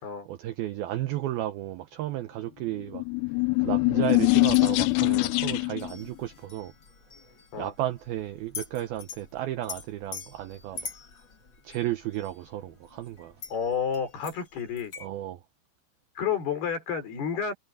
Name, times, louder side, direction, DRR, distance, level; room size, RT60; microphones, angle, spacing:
voice 1, 0.3-3.0 3.6-6.7 7.6-10.9 11.6-13.4 15.0-15.4, right 13 dB, 80° right, 2.2 m, -33 dB
sound 1, 2.8-5.9, left 27 dB, 85° left, 2.5 m, -23 dB
sound 2, 4.3-15.1, left 5 dB, 40° left, 1.6 m, -45 dB
voice 2, 13.5-14.9 16.2-17.5, left 7 dB, 60° left, 6.3 m, -30 dB
omnidirectional pair, 5.4 m